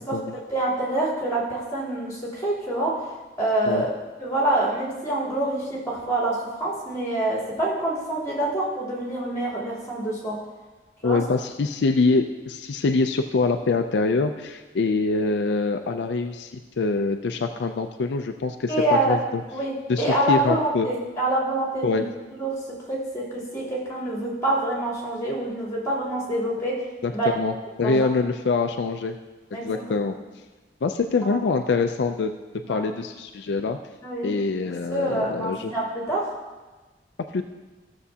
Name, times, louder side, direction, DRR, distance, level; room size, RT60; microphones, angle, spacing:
voice 1, 0.5-10.4 11.0-11.2 18.7-19.2 19.5-19.7 20.0-22.1 22.4-22.5 22.9-26.7 27.1-27.3 27.8-28.1 29.5-29.8 31.3-31.4 32.6-32.9 34.0-34.3 34.9-36.2, right 1 dB, 20° left, -8 dB, 3.4 m, -26 dB
voice 2, 11.0-16.5 16.8-19.4 19.9-20.9 21.8-22.0 27.0-27.5 27.8-29.2 29.6-30.2 30.8-32.3 32.7-33.8 34.2-35.7 37.3-37.4, left 3 dB, 75° left, 6 dB, 0.4 m, -24 dB
14.5 x 6.9 x 2.8 m, 1.3 s
head